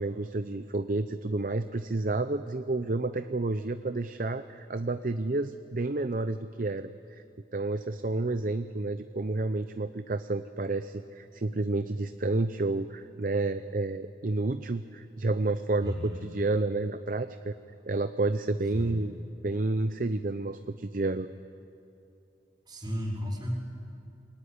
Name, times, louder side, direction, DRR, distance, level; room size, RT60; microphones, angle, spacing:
voice 1, 0.0-7.2 7.5-17.6 17.9-19.1 19.4-21.3, right 2 dB, 50° right, 10 dB, 0.7 m, -30 dB
voice 2, 15.8-16.2 18.7-19.0 22.7-23.5, equal, 25° right, -1 dB, 4.8 m, -34 dB
26.5 x 22.5 x 9.8 m, 2.6 s
head